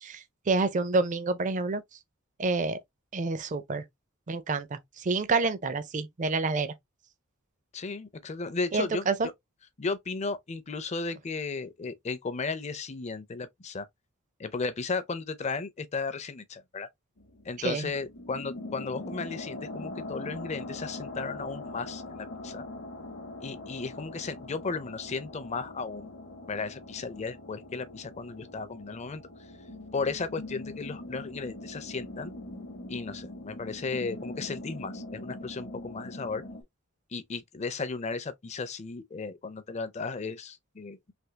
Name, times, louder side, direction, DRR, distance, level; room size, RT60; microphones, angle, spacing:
voice 1, 0.0-1.8 2.4-2.8 3.1-3.8 4.3-6.7 8.7-9.3 17.6-17.9, right 3 dB, 35° right, 0.4 m, -28 dB
voice 2, 7.7-9.0 9.8-13.9 14.4-16.9 17.5-22.6 23.4-26.1 26.5-29.2 29.9-32.3 32.9-36.4 37.1-41.0, left 4 dB, 30° left, 0.5 m, -35 dB
sound 1, 17.2-36.6, left 2 dB, 55° left, 0.8 m, -42 dB
3.4 x 2.7 x 2.8 m
head